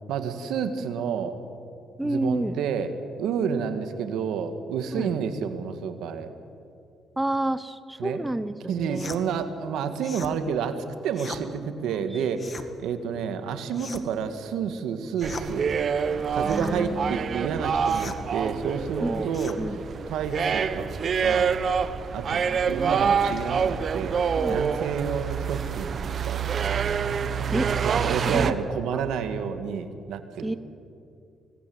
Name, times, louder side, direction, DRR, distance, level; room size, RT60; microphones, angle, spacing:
voice 1, 0.1-1.4 2.0-2.9 3.2-6.3 8.0-8.2 8.7-15.7 16.3-19.6 20.1-20.9 21.2-21.5 22.1-24.2 24.5-26.9 27.6-30.5, right 7 dB, 85° right, 8 dB, 2.0 m, -30 dB
voice 2, 2.0-2.5 4.9-5.1 7.2-9.1 11.8-12.2 15.0-15.2 16.4-17.5 19.0-19.3 19.6-19.8 22.5-23.4 24.4-24.6 26.0-26.1 27.5-27.7 28.3-28.5 28.9-29.0 30.4-30.5, right 1 dB, 10° right, 13 dB, 0.9 m, -30 dB
sound 1, 8.9-9.2 10.0-10.3 11.1-11.4 12.3-12.7 13.7-14.2 15.2-15.5 16.5-16.8 17.9-18.2 19.3-19.6, left 4 dB, 35° left, 1.8 m, -39 dB
sound 2, 15.2-28.5, right 6 dB, 50° right, 1.1 m, -27 dB
25.0 x 19.0 x 8.0 m, 2.5 s
cardioid pair, 90°, 0 cm